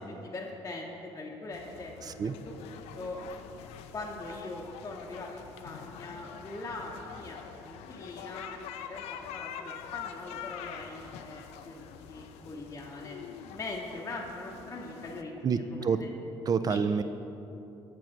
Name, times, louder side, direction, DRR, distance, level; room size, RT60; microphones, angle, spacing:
voice 1, 0.1-2.2 2.4-3.2 3.9-13.2 13.5-16.1 16.6-16.8, left 2 dB, 25° left, -2 dB, 0.7 m, -42 dB
sound 1, 1.5-15.2, left 8 dB, 85° left, 0.4 m, -45 dB
voice 2, 2.0-2.4 15.4-16.0 16.5-17.0, right 6 dB, 35° right, 11 dB, 0.4 m, -28 dB
6.7 x 6.2 x 4.4 m, 3.0 s
cardioid pair, 85°, 11 cm